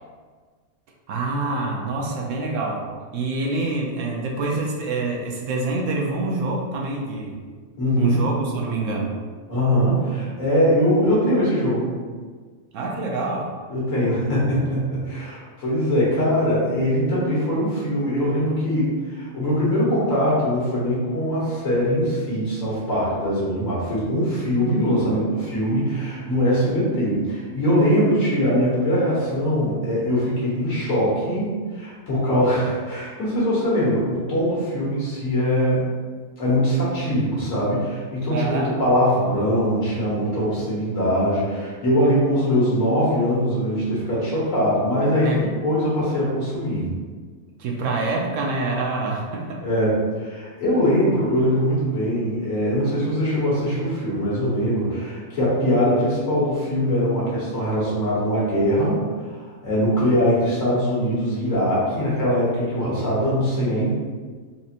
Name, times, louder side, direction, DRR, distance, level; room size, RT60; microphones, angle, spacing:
voice 1, 1.1-2.9 3.1-7.4 8.0-9.1 12.7-13.5 38.3-38.7 45.2-45.6 47.6-49.6, right 3 dB, 75° right, -1 dB, 1.0 m, -26 dB
voice 2, 7.8-8.2 9.5-11.9 13.7-35.8 36.4-46.9 49.6-63.9, equal, 80° left, -7 dB, 1.7 m, -22 dB
4.2 x 2.5 x 2.8 m, 1.5 s
omnidirectional pair, 1.4 m